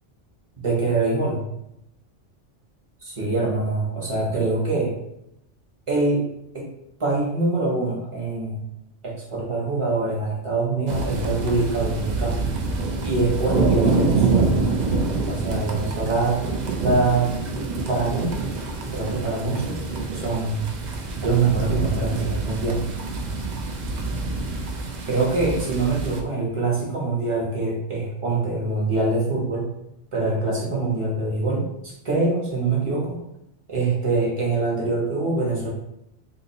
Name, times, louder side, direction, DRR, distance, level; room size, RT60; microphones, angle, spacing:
voice 1, 0.6-1.4 3.0-5.0 5.9-6.2 6.5-6.7 7.0-8.6 9.0-12.5 13.0-14.9 15.3-16.4 16.8-17.3 17.9-18.4 18.8-19.9 20.1-20.7 21.2-22.8 25.1-29.7 30.1-33.2 33.7-35.7, right 3 dB, 30° right, -4 dB, 0.8 m, -24 dB
sound 1, 10.9-26.2, right 3 dB, 70° right, 0.4 m, -26 dB
2.7 x 2.5 x 3.9 m, 0.83 s
omnidirectional pair, 1.3 m